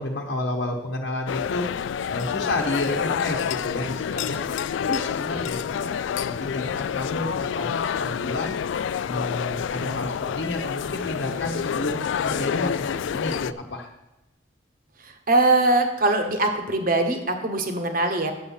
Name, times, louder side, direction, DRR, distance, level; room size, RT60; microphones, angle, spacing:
voice 1, 0.0-4.4 4.8-8.5 9.0-13.9, left 2 dB, 70° left, -1 dB, 1.1 m, -30 dB
sound 1, 1.3-13.5, left 8 dB, 90° left, 0.3 m, -28 dB
voice 2, 15.3-18.3, right 2 dB, 50° right, 5 dB, 1.2 m, -21 dB
9.1 x 7.2 x 5.6 m, 0.96 s
head